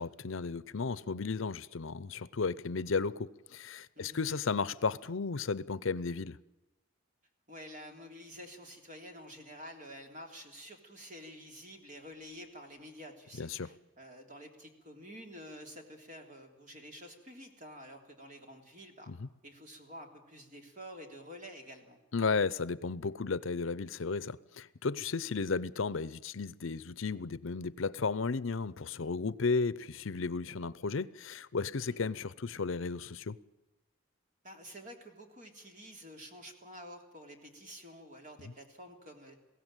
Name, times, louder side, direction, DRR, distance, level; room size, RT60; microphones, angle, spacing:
voice 1, 0.0-6.4 13.4-13.7 19.1-19.3 22.1-33.4, left 4 dB, 70° left, 0.7 m, -34 dB
voice 2, 7.5-19.1 19.4-22.0 25.3-25.4 31.9-32.1 34.4-39.4, equal, 35° right, 3.4 m, -49 dB
22.0 x 16.5 x 9.1 m
head